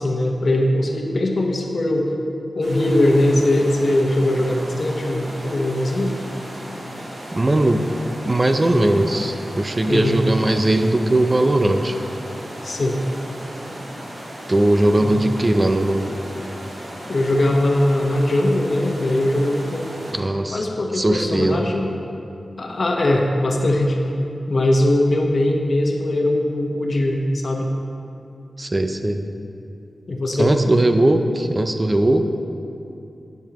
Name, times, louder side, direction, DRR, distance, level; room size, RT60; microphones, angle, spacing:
voice 1, 0.0-2.1 2.6-6.2 9.9-10.2 12.6-13.0 15.0-15.2 17.1-19.9 20.5-21.9 22.6-24.0 24.5-27.7 30.1-30.5, left 1 dB, 55° left, 1 dB, 1.1 m, -20 dB
sound 1, 2.6-20.1, equal, 65° right, 2.5 m, -35 dB
voice 2, 7.3-7.9 8.3-11.9 14.5-16.1 20.1-20.6 20.9-21.7 28.6-29.3 30.3-32.2, right 1 dB, 30° right, 6 dB, 0.5 m, -19 dB
12.0 x 9.4 x 3.0 m, 2.6 s
wide cardioid pair, 100°, 0 cm